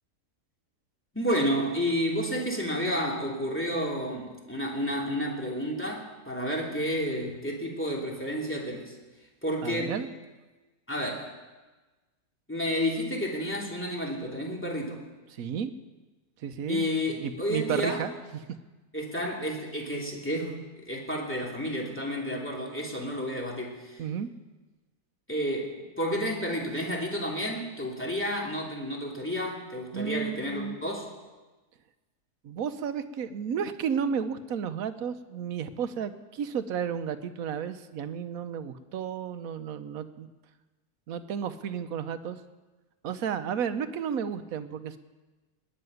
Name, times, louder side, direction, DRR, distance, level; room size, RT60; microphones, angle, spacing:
voice 1, 1.1-8.9 9.4-9.9 10.9-11.3 12.5-15.0 16.7-18.0 18.9-24.0 25.3-31.1, equal, 10° left, -2 dB, 2.8 m, -31 dB
voice 2, 9.6-10.1 15.3-15.7 16.4-16.9 17.2-18.1 24.0-24.3 29.9-30.8 32.4-40.3 41.1-42.4 43.0-45.0, right 7 dB, 70° right, 10 dB, 1.3 m, -32 dB
20.0 x 6.8 x 9.4 m, 1.2 s
omnidirectional pair, 1.6 m